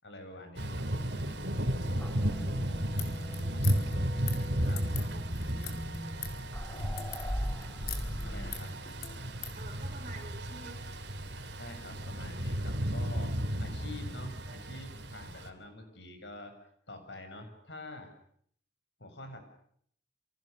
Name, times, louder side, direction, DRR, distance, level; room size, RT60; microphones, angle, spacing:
voice 1, 0.0-1.5 2.2-2.3 4.6-4.9 8.2-8.8 11.6-18.1 19.0-19.4, left 1 dB, 75° left, 7 dB, 7.0 m, -47 dB
Thunder / Rain, 0.5-15.5, equal, 70° right, 3.4 m, -34 dB
sound 1, 2.0-8.6, equal, 10° left, 1.6 m, -40 dB
sound 2, 3.0-9.6, left 8 dB, 55° left, 4.9 m, -44 dB
voice 2, 4.9-6.2 9.5-11.2 14.4-14.7 15.2-15.4, right 2 dB, 45° right, 3 dB, 6.5 m, -51 dB
29.0 x 28.5 x 6.7 m, 0.66 s
head